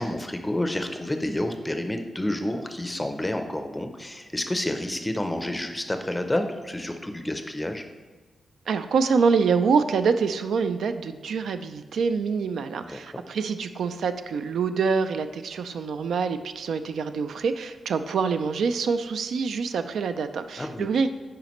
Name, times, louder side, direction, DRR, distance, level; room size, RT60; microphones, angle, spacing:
voice 1, 0.0-7.8 12.8-13.2 20.6-20.9, left 1 dB, 10° left, 6 dB, 0.5 m, -29 dB
voice 2, 8.7-21.1, right 5 dB, 80° right, 10 dB, 0.3 m, -25 dB
9.2 x 4.9 x 3.0 m, 1.3 s
wide cardioid pair, 155°, 0 cm